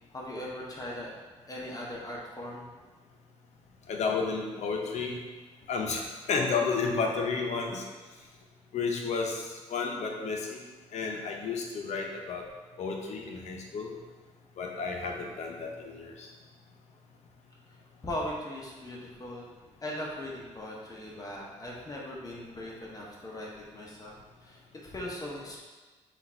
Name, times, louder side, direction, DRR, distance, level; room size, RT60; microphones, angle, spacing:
voice 1, 0.1-1.1 1.5-2.7 18.0-19.5 19.8-25.6, left 1 dB, 30° left, -3 dB, 0.8 m, -39 dB
voice 2, 3.9-5.2 5.7-6.0 6.3-7.9 8.7-10.6 10.9-12.4 12.8-13.9 14.6-16.3, left 4 dB, 65° left, 1 dB, 0.7 m, -32 dB
3.9 x 2.5 x 4.3 m, 1.3 s
cardioid pair, 75°, 13 cm